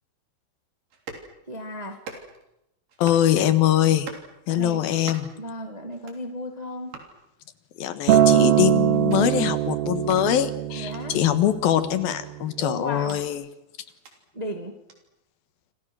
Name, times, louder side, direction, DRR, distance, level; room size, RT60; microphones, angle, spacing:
sound 1, 0.9-1.3 1.9-2.5 2.9-3.3 3.9-4.3 4.9-5.4 5.9-6.3 6.9-7.1 7.9-8.3 8.9-9.2 9.9-10.2 10.9-11.0 11.9-13.3 13.9-14.1 14.9-15.0, right 4 dB, 65° right, 5.0 m, -43 dB
voice 1, 1.5-2.0 4.5-4.8 5.4-7.0 10.8-11.2 12.6-13.2 14.3-14.8, left 1 dB, 15° right, 5 dB, 1.6 m, -34 dB
voice 2, 3.0-4.1 4.5-5.3 7.8-13.4, left 11 dB, 80° left, 11 dB, 3.3 m, -23 dB
Acoustic guitar, 8.1-12.4 13.2-13.3, right 12 dB, 85° right, 3.1 m, -22 dB
29.0 x 25.5 x 6.3 m, 0.87 s
omnidirectional pair, 4.1 m